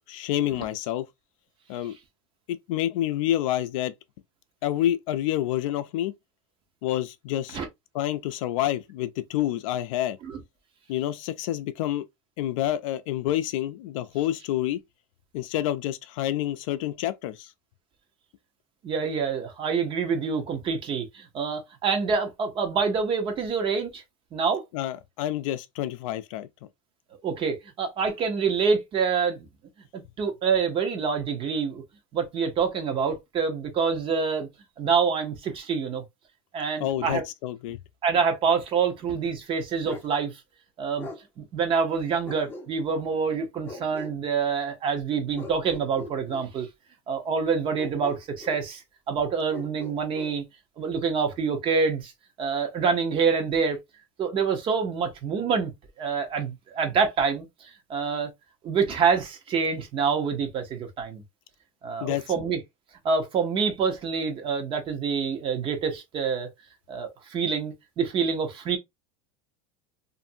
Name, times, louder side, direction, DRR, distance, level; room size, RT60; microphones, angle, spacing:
voice 1, 0.1-1.1 1.7-2.0 2.5-3.9 4.6-6.1 6.8-7.6 7.9-10.2 10.9-12.0 12.4-14.8 15.3-17.5 24.7-26.5 36.8-37.8 62.0-62.2, left 13 dB, 75° left, 0.4 m, -28 dB
voice 2, 18.8-24.0 24.3-24.6 27.2-29.5 29.9-31.8 32.1-34.5 34.8-36.0 36.5-37.2 38.0-40.3 40.8-41.1 41.4-46.7 47.1-48.8 49.1-50.4 50.8-52.1 52.4-53.8 54.2-55.7 56.0-58.3 58.6-61.2 61.8-62.6 63.0-66.5 66.9-68.8, right 5 dB, 30° right, 0.8 m, -26 dB
Bark, 39.8-40.1 41.0-41.2 42.2-43.0 43.6-44.2 45.3-46.5 47.8-48.7 49.5-50.4, left 2 dB, 10° left, 0.6 m, -41 dB
2.6 x 2.6 x 2.6 m
supercardioid pair, 145°, 17 cm